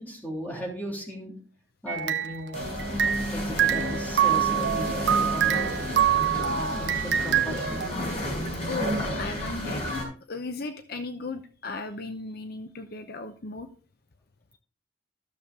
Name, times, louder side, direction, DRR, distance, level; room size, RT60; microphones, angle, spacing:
voice 1, 0.0-1.3 1.8-2.6 3.3-5.6 6.5-7.8, equal, 10° left, -2 dB, 3.2 m, -37 dB
sound 1, 1.9-3.3 3.6-7.9, right 9 dB, 65° right, 0.8 m, -25 dB
sound 2, 2.5-10.0, equal, 35° left, 5.2 m, -31 dB
voice 2, 8.6-9.8 10.3-13.7, left 3 dB, 50° left, 8 dB, 0.7 m, -36 dB
14.0 x 7.0 x 3.6 m, 0.39 s
head